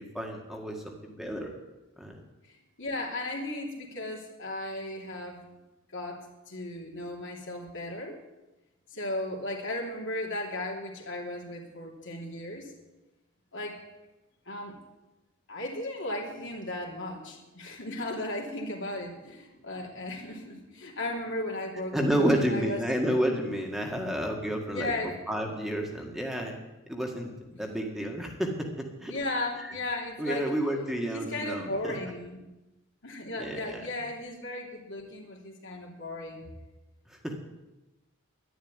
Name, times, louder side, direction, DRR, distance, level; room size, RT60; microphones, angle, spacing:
voice 1, 0.0-1.5 2.0-2.2 21.9-26.6 26.9-27.3 27.6-29.1 29.6-29.7 30.2-31.9 33.4-33.8 37.1-37.4, equal, ahead, 1 dB, 1.8 m, -30 dB
voice 2, 2.5-5.4 5.9-8.2 8.9-12.7 13.5-13.8 14.5-14.8 15.5-22.8 24.7-25.2 26.1-26.2 29.1-30.5 31.1-32.4 33.0-36.5, left 1 dB, 60° left, 1 dB, 3.0 m, -36 dB
11.0 x 11.0 x 9.7 m, 1.0 s
head